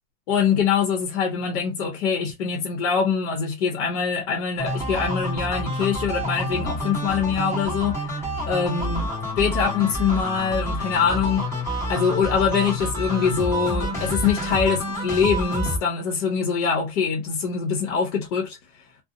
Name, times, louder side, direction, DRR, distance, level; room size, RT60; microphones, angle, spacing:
voice 1, 0.3-9.1 9.4-11.5 11.9-18.6, left 6 dB, 70° left, 0.8 m, -24 dB
sound 1, 4.6-15.8, equal, 5° left, 1.0 m, -28 dB
2.7 x 2.0 x 2.5 m
supercardioid pair, 160°, 37 cm